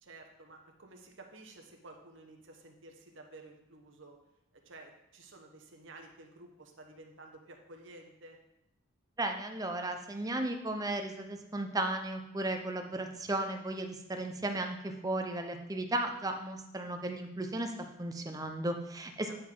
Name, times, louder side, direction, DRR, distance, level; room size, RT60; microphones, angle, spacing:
voice 1, 0.0-4.2 4.5-8.4 19.3-19.4, right 2 dB, 60° right, 2 dB, 1.0 m, -53 dB
voice 2, 9.2-17.7 18.0-19.4, right 2 dB, 15° right, 5 dB, 0.6 m, -35 dB
9.6 x 3.8 x 4.6 m, 0.85 s
head